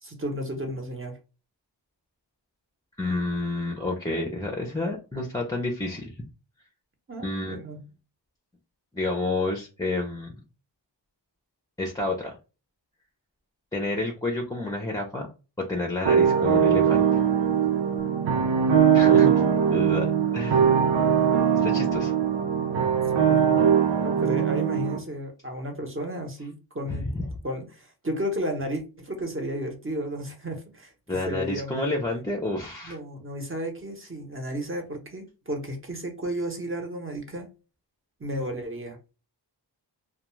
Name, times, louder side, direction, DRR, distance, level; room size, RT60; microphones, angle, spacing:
voice 1, 0.0-1.2 7.1-7.8 19.1-19.5 23.3-23.7 24.0-27.1 27.4-32.0 32.8-37.5 38.2-39.0, equal, 30° right, 3 dB, 0.8 m, -33 dB
voice 2, 3.0-6.1 7.2-7.6 8.9-10.3 11.8-12.3 13.7-15.3 15.7-17.1 18.9-19.3 19.7-20.1 20.3-20.6 21.6-22.1 26.9-27.3 31.1-33.0, left 2 dB, 10° left, 1 dB, 0.5 m, -29 dB
sound 1, 16.0-25.0, right 8 dB, 90° right, 0.6 m, -21 dB
2.3 x 2.3 x 3.0 m, 0.31 s
wide cardioid pair, 55°, 44 cm